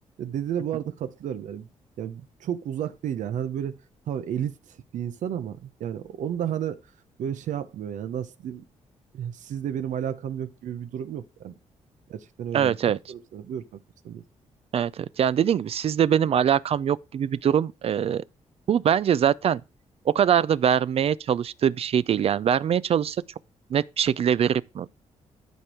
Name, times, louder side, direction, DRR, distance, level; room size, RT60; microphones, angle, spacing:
voice 1, 0.2-1.7 2.0-3.8 4.1-4.5 4.9-6.8 7.2-8.6 9.1-11.5 12.1-12.8 13.1-13.8 14.0-14.2, right 9 dB, 80° right, 0.9 m, -32 dB
voice 2, 12.5-13.0 14.7-18.2 18.7-19.6 20.1-23.2 23.7-24.9, right 9 dB, 55° right, 0.4 m, -23 dB
12.0 x 4.5 x 4.9 m
cardioid pair, 105°, 13 cm